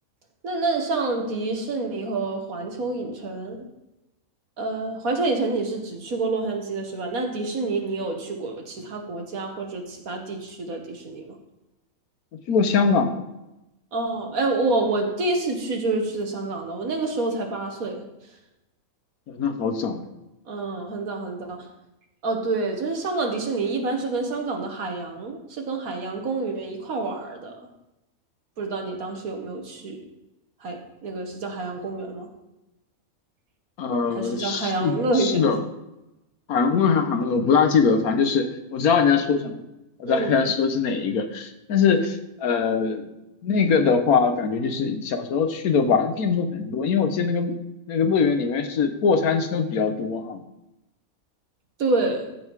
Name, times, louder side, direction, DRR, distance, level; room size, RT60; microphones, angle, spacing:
voice 1, 0.4-3.7 4.6-11.4 13.9-18.0 20.5-21.7 22.2-27.7 28.6-30.0 30.6-32.3 34.1-35.5 40.1-40.4 51.8-52.3, right 3 dB, 75° right, 2 dB, 1.9 m, -28 dB
voice 2, 12.5-13.2 19.3-20.0 33.8-35.6 36.5-39.6 40.0-43.0 43.4-47.5 47.9-50.4, left 5 dB, 85° left, 7 dB, 1.5 m, -22 dB
14.0 x 5.4 x 4.7 m, 0.93 s
omnidirectional pair, 1.5 m